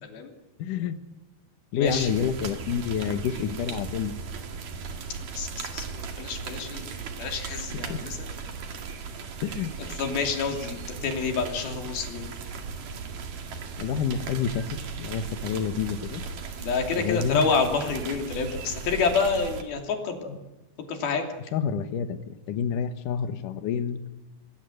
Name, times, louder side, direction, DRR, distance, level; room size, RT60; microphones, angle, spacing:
voice 1, 0.0-0.3 1.7-2.1 5.4-6.9 7.2-8.2 9.8-12.3 16.6-20.3 20.9-21.2, left 5 dB, 50° left, 4 dB, 4.5 m, -28 dB
voice 2, 0.6-1.0 1.7-4.1 7.9-8.0 9.4-9.7 13.8-14.7 15.0-16.2 17.0-17.5 21.5-24.0, left 7 dB, 85° left, 9 dB, 1.8 m, -28 dB
sound 1, 1.8-19.6, right 5 dB, 50° right, 3.2 m, -37 dB
27.5 x 21.0 x 8.0 m, 0.99 s
omnidirectional pair, 5.8 m